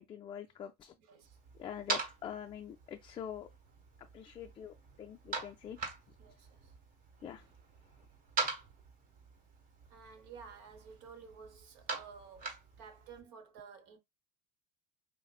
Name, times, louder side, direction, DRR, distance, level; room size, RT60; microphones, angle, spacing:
voice 1, 0.0-0.9 1.6-3.5 4.1-5.8 7.2-7.5, left 9 dB, 25° left, 0.4 m, -45 dB
voice 2, 1.0-1.4 6.2-6.7 7.4-7.5 9.9-12.5 12.8-14.0, right 6 dB, 70° right, 1.0 m, -53 dB
sound 1, 1.2-13.2, right 4 dB, 45° right, 1.4 m, -43 dB
5.6 x 2.0 x 2.4 m
supercardioid pair, 115°, 21 cm